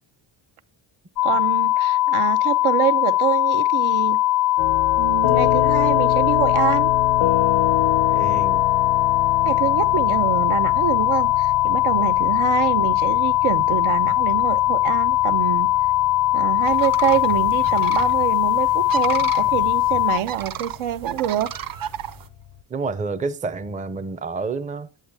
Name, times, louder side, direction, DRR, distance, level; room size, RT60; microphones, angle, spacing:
sound 1, 1.2-20.2, left 15 dB, 50° left, 0.5 m, -20 dB
voice 1, 1.2-4.2 5.0-6.9 9.4-15.7 16.3-21.5, right 12 dB, 85° right, 0.9 m, -25 dB
sound 2, 4.6-22.6, left 10 dB, 90° left, 0.8 m, -28 dB
voice 2, 8.1-8.7 11.9-12.1 22.7-24.9, right 4 dB, 15° right, 0.5 m, -29 dB
sound 3, 16.7-22.3, right 10 dB, 45° right, 0.7 m, -33 dB
10.5 x 8.1 x 3.4 m
cardioid pair, 145°, 48 cm